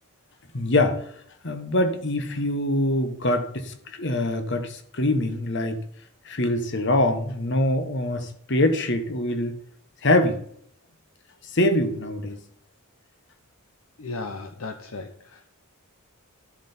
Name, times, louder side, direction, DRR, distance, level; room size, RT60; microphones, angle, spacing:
voice 1, 0.5-1.0 1.4-5.8 6.2-9.6 10.0-10.4 11.5-12.4, left 1 dB, 55° left, 1.2 m, -24 dB
voice 2, 14.0-15.5, left 3 dB, 70° left, 0.8 m, -36 dB
14.0 x 7.3 x 4.4 m
head